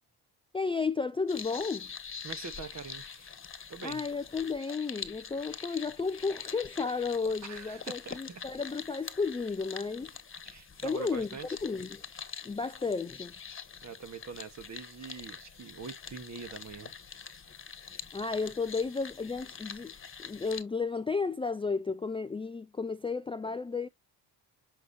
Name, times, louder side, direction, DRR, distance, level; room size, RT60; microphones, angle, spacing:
voice 1, 0.5-1.9 3.8-10.1 10.8-11.3 11.6-12.0 12.4-13.4 18.1-19.9 20.2-23.9, left 4 dB, 15° left, 0.4 m, -33 dB
sound 1, 1.3-20.6, left 6 dB, 30° left, 1.4 m, -45 dB
voice 2, 2.2-3.4 3.7-4.0 7.4-8.5 10.4-11.5 13.8-16.9, right 5 dB, 40° right, 1.8 m, -44 dB
7.7 x 5.8 x 2.9 m
cardioid pair, 105°, 41 cm